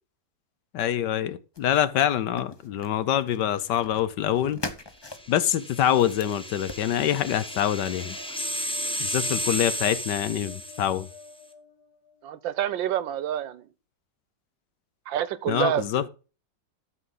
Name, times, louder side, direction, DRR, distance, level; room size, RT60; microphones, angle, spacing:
voice 1, 0.7-4.6 5.3-8.2 9.0-11.1 15.5-16.0, left 10 dB, 70° left, 1.3 m, -25 dB
sound 1, 1.5-6.9, left 2 dB, 25° left, 0.5 m, -42 dB
sound 2, 5.2-11.2, equal, 5° left, 0.8 m, -33 dB
sound 3, 5.7-12.4, left 3 dB, 55° left, 1.7 m, -50 dB
voice 2, 12.2-13.7 15.1-16.1, right 11 dB, 80° right, 1.6 m, -28 dB
12.5 x 7.5 x 3.9 m
omnidirectional pair, 2.0 m